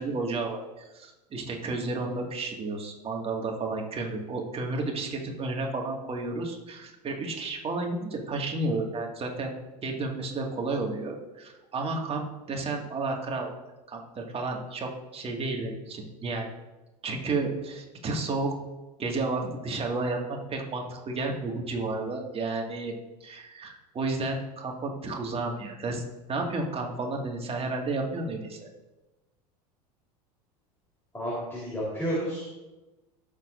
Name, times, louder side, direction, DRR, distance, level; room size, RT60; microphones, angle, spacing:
voice 1, 0.0-9.5 9.8-13.5 13.9-16.5 17.0-18.6 19.0-22.9 23.2-26.0 26.3-28.6, right 3 dB, 30° right, 1 dB, 2.1 m, -32 dB
voice 2, 31.1-32.5, equal, 10° left, -6 dB, 3.8 m, -31 dB
17.0 x 7.1 x 2.6 m, 1.1 s
hypercardioid pair, 80°, 21 cm